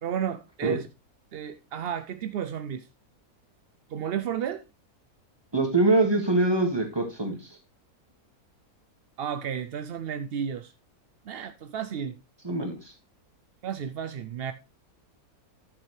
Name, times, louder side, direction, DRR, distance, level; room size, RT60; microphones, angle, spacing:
voice 1, 0.0-0.9 1.3-2.9 3.9-4.6 9.2-10.7 11.2-12.2 13.6-14.5, right 8 dB, 70° right, 0.5 m, -32 dB
voice 2, 5.5-7.5 12.4-12.9, right 2 dB, 15° right, 1.9 m, -24 dB
11.5 x 6.8 x 3.2 m
omnidirectional pair, 1.6 m